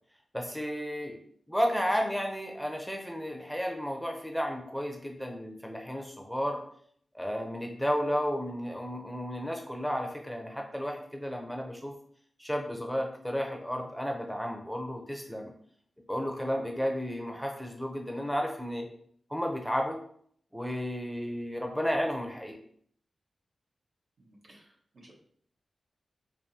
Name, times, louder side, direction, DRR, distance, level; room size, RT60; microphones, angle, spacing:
voice 1, 0.3-1.2 1.5-6.6 7.1-11.9 12.4-15.5 16.1-18.9 19.3-20.0 20.5-22.6, equal, ahead, 2 dB, 0.6 m, -32 dB
voice 2, 24.2-24.7 24.9-25.1, right 1 dB, 70° right, -4 dB, 1.2 m, -56 dB
4.8 x 2.6 x 2.8 m, 0.63 s
cardioid pair, 70°, 0 cm